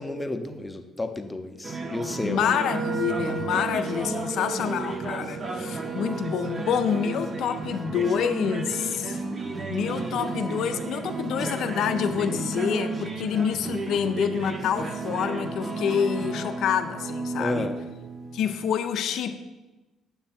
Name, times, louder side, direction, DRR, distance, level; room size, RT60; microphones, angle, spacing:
voice 1, 0.0-2.4 17.4-17.8, left 2 dB, 10° left, 6 dB, 0.5 m, -31 dB
sound 1, 1.6-18.6, right 3 dB, 30° right, 0.6 m, -33 dB
voice 2, 2.2-9.2 9.7-17.7 18.3-19.4, left 8 dB, 65° left, 7 dB, 0.4 m, -27 dB
Wind instrument woodwind instrument, 2.4-9.1, right 8 dB, 80° right, 0.7 m, -39 dB
6.9 x 3.3 x 5.7 m, 1.1 s
cardioid pair, 130°, 0 cm